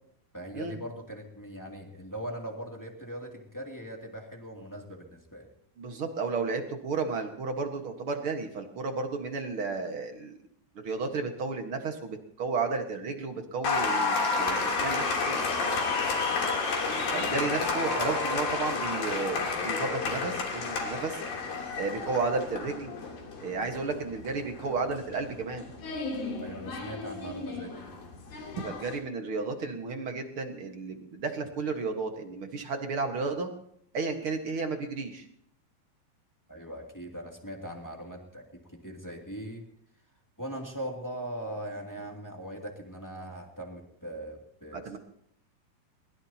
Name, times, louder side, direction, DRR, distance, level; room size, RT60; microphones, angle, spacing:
voice 1, 0.3-5.5 16.9-17.4 26.4-27.9 36.5-39.7 40.4-45.0, right 1 dB, 5° left, 0 dB, 1.8 m, -40 dB
voice 2, 5.8-10.4 10.7-15.5 17.1-21.2 21.7-22.9 23.4-25.7 28.5-33.5 33.9-35.3 44.7-45.0, right 4 dB, 50° right, 4 dB, 1.8 m, -33 dB
Applause, 13.6-29.0, left 4 dB, 70° left, 4.9 m, -31 dB
23.0 x 21.0 x 2.9 m, 0.68 s
omnidirectional pair, 4.3 m